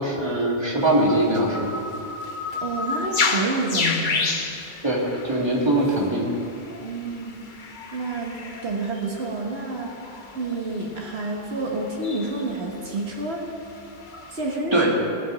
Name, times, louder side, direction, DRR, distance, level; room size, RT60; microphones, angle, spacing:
voice 1, 0.0-1.7 4.8-6.3 14.7-14.9, right 1 dB, 25° right, -3 dB, 2.0 m, -22 dB
sound 1, 0.8-14.6, left 3 dB, 50° left, 1.1 m, -31 dB
voice 2, 2.6-4.3 6.8-7.4 7.9-8.4 8.6-13.5 14.3-14.9, right 2 dB, 70° right, -1 dB, 1.6 m, -29 dB
18.5 x 6.3 x 6.1 m, 2.7 s
omnidirectional pair, 1.1 m